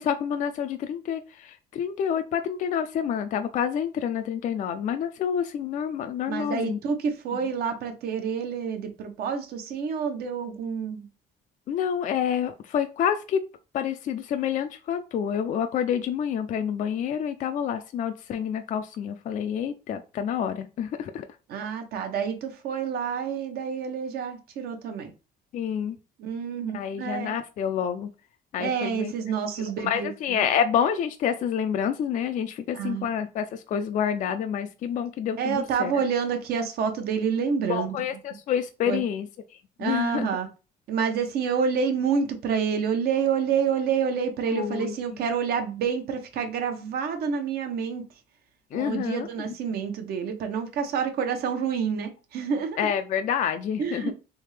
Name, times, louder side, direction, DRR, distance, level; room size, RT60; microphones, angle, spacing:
voice 1, 0.0-6.8 11.7-13.4 13.7-21.3 25.5-26.0 26.7-28.1 28.5-29.1 29.6-35.9 37.7-39.3 39.8-40.3 44.5-44.9 48.7-49.3 52.8-54.1, left 8 dB, 50° left, 8 dB, 0.4 m, -28 dB
voice 2, 6.3-11.1 21.5-25.1 26.2-27.4 28.6-30.4 32.7-33.1 35.4-38.0 38.9-39.0 39.8-40.5 40.9-48.0 48.7-52.9 53.8-54.1, right 6 dB, 65° right, 6 dB, 0.8 m, -28 dB
3.4 x 2.7 x 3.2 m, 0.32 s
cardioid pair, 110°, 17 cm